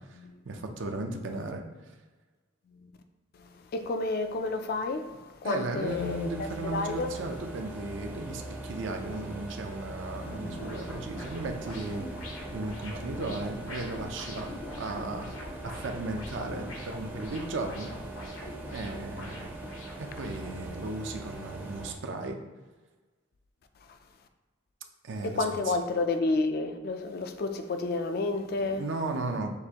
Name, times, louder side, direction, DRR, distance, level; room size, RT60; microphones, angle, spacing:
voice 1, 0.4-1.6 5.4-12.1 12.5-15.3 15.6-17.9 18.7-19.5 20.0-22.4 25.0-25.8 28.6-29.5, right 2 dB, 60° right, 0.5 m, -35 dB
voice 2, 3.4-7.2 10.1-10.9 23.9-24.0 25.2-28.8, left 3 dB, 45° left, 0.3 m, -31 dB
sound 1, 5.8-21.9, right 2 dB, 10° right, 0.5 m, -42 dB
sound 2, 10.6-20.7, left 1 dB, 80° left, 0.8 m, -44 dB
6.5 x 2.5 x 2.8 m
head